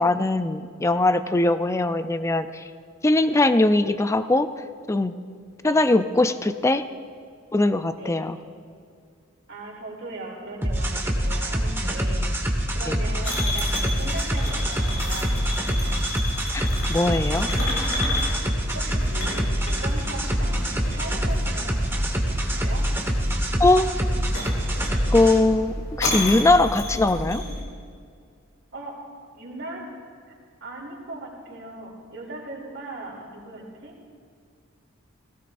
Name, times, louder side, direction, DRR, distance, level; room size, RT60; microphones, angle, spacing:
voice 1, 0.0-2.6 3.0-4.5 4.9-5.1 5.6-6.8 7.5-8.4 12.9-13.0 16.5-17.5 23.6-23.9 25.1-27.4, left 2 dB, 15° left, 11 dB, 0.4 m, -21 dB
voice 2, 5.6-5.9 8.0-8.4 9.5-16.1 18.7-22.9 28.7-29.0 29.4-29.8 30.3-30.4 30.6-33.9, right 2 dB, 60° right, -2 dB, 2.9 m, -39 dB
sound 1, 10.6-25.4, equal, 10° right, 1.3 m, -25 dB
sound 2, 13.2-27.6, left 1 dB, 85° left, 3.2 m, -31 dB
17.5 x 16.5 x 2.6 m, 2.2 s
head